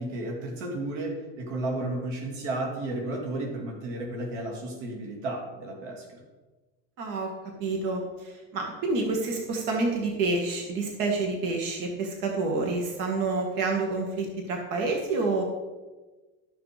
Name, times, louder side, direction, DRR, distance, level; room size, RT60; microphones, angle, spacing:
voice 1, 0.0-6.2, right 2 dB, 90° right, 1 dB, 2.8 m, -33 dB
voice 2, 7.0-7.3 7.6-15.4, right 3 dB, 65° right, 1 dB, 2.2 m, -28 dB
13.0 x 6.7 x 5.2 m, 1.2 s
supercardioid pair, 125°, 35 cm